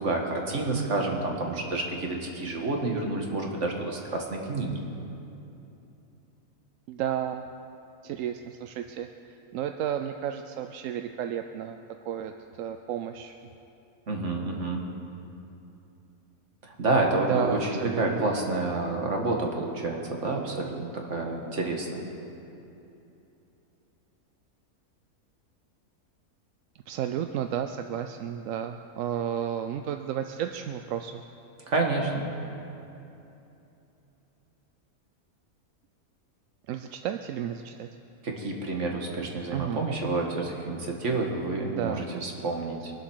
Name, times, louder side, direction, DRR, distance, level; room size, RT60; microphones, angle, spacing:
voice 1, 0.0-4.8 14.1-14.8 16.6-17.7 18.0-22.0 31.7-32.2 38.2-42.9, right 2 dB, 50° right, 1 dB, 2.0 m, -29 dB
voice 2, 6.9-7.5 8.0-13.3 17.2-18.2 26.9-31.2 36.7-37.9 39.5-39.8 41.7-42.0, right 9 dB, 70° right, 7 dB, 0.9 m, -32 dB
23.0 x 7.8 x 6.2 m, 2.8 s
omnidirectional pair, 1.6 m